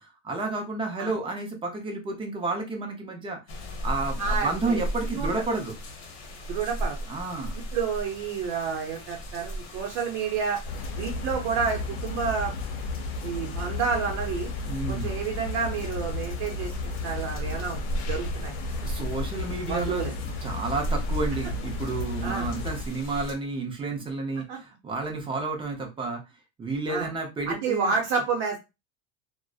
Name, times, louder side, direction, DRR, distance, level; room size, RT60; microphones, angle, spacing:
voice 1, 0.0-3.4 3.8-5.7 7.1-7.6 14.6-15.1 18.8-26.2 26.6-27.9, right 3 dB, 15° right, 2 dB, 0.6 m, -31 dB
sound 1, 3.5-23.4, equal, 55° left, 0.9 m, -36 dB
voice 2, 4.2-4.8 5.1-5.3 6.5-7.0 7.7-10.6 11.0-12.5 13.2-14.5 14.9-16.7 17.0-17.8 18.1-18.5 19.7-20.2 22.2-22.5 24.5-24.6 26.9-27.1 27.5-28.6, right 5 dB, 65° right, 1 dB, 0.7 m, -29 dB
sound 2, 10.7-22.8, left 3 dB, 85° left, 0.6 m, -34 dB
2.5 x 2.1 x 2.3 m, 0.25 s
supercardioid pair, 140°, 32 cm